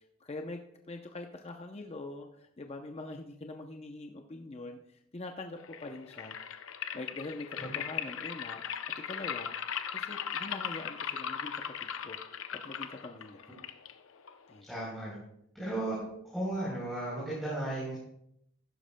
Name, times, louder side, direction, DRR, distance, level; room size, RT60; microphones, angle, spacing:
voice 1, 0.2-0.6 0.9-6.4 6.9-12.2 12.6-13.7 14.5-14.7, left 2 dB, 30° left, 4 dB, 0.6 m, -44 dB
sound 1, 5.6-14.6, left 8 dB, 70° left, 0.6 m, -38 dB
voice 2, 14.7-15.2 15.5-16.0 16.2-18.0, right 1 dB, ahead, -8 dB, 3.6 m, -35 dB
15.0 x 11.5 x 2.2 m, 0.75 s
head